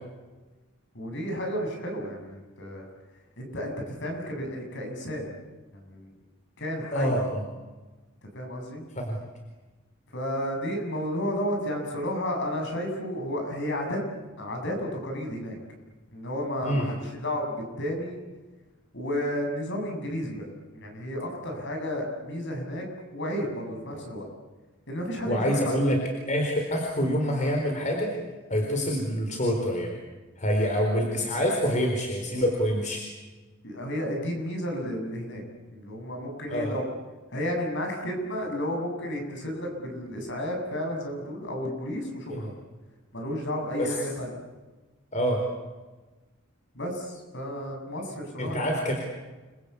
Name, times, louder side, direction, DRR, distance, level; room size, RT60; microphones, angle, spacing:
voice 1, 0.9-2.9 3.4-5.3 5.7-6.1 6.6-7.2 8.3-8.8 10.1-14.0 14.4-15.6 16.1-18.2 18.9-20.4 20.7-22.9 23.1-24.3 24.9-25.7 28.5-28.7 33.6-35.4 35.7-36.8 37.3-42.5 43.1-44.3 46.7-48.7, equal, 55° left, 3 dB, 7.8 m, -32 dB
voice 2, 6.9-7.4 9.0-9.2 16.6-16.9 25.3-26.0 26.3-28.1 28.5-30.0 30.4-33.0 36.5-36.7 42.3-42.4 43.8-44.0 45.1-45.4 48.4-49.0, equal, 35° left, 2 dB, 4.4 m, -26 dB
29.5 x 23.0 x 8.4 m, 1.2 s
head